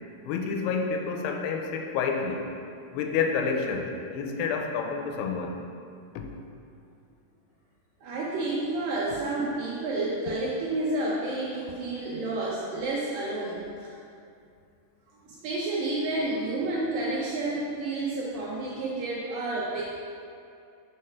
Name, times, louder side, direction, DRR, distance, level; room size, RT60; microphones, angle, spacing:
voice 1, 0.2-2.5 2.9-5.6 6.2-6.3, left 5 dB, 85° left, 3 dB, 2.7 m, -29 dB
voice 2, 8.0-13.9 15.3-19.8, right 2 dB, 75° right, -5 dB, 2.1 m, -30 dB
6.6 x 4.5 x 5.6 m, 2.5 s
omnidirectional pair, 4.8 m